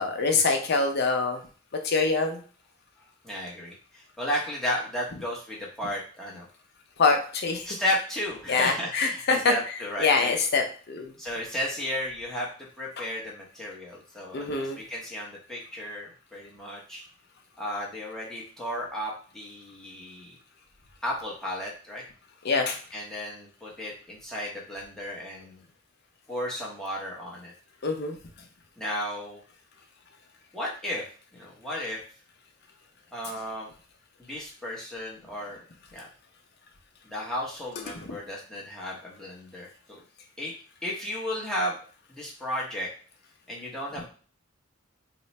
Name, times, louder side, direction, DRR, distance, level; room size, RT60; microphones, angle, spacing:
voice 1, 0.0-1.4 1.8-2.4 7.0-7.7 8.5-9.5 10.0-11.1 14.3-14.8 22.4-22.8 27.8-28.2 38.0-38.1, left 4 dB, 50° left, 3 dB, 0.6 m, -24 dB
voice 2, 3.2-6.5 7.6-10.3 11.2-17.0 17.6-20.4 21.0-22.0 22.9-25.6 26.3-27.5 28.8-29.4 30.5-31.1 31.3-32.0 33.1-33.7 34.2-35.6 35.9-36.1 37.0-40.0 40.4-40.5 40.8-41.8 42.1-42.9 43.5-44.1, left 1 dB, ahead, -5 dB, 0.8 m, -34 dB
3.0 x 2.1 x 4.1 m, 0.40 s
head